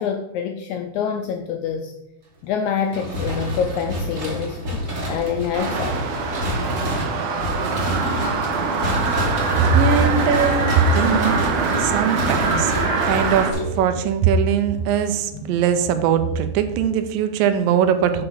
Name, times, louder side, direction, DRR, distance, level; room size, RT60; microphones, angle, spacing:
voice 1, 0.0-1.9 2.4-4.8 5.1-6.0, left 7 dB, 80° left, 5 dB, 1.7 m, -26 dB
sound 1, 2.9-14.1, equal, 40° right, 0.9 m, -28 dB
sound 2, 4.0-4.7 5.7-6.3 7.7-8.4 9.7-10.5 11.7-12.5 13.3-14.1 15.1-16.3, left 2 dB, 60° left, 1.8 m, -37 dB
sound 3, 5.5-13.5, right 4 dB, 70° right, 1.7 m, -24 dB
voice 2, 9.7-11.4 11.8-12.7 13.0-18.2, right 6 dB, 85° right, 9 dB, 2.4 m, -20 dB
7.0 x 5.5 x 5.5 m, 0.90 s
omnidirectional pair, 3.9 m